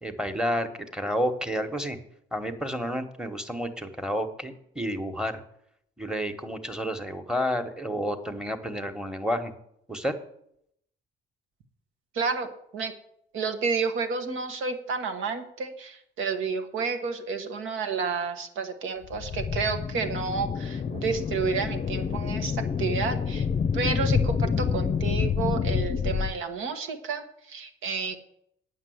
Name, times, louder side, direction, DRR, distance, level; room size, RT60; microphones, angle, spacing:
voice 1, 0.0-2.0 2.3-5.4 6.0-9.5 9.9-10.1, equal, 5° right, 8 dB, 1.4 m, -30 dB
voice 2, 12.1-12.9 13.3-23.5 23.7-28.2, right 5 dB, 85° right, 6 dB, 1.5 m, -30 dB
sound 1, 19.0-26.3, left 6 dB, 35° left, 0.6 m, -28 dB
9.0 x 6.5 x 7.9 m, 0.72 s
cardioid pair, 90°, 20 cm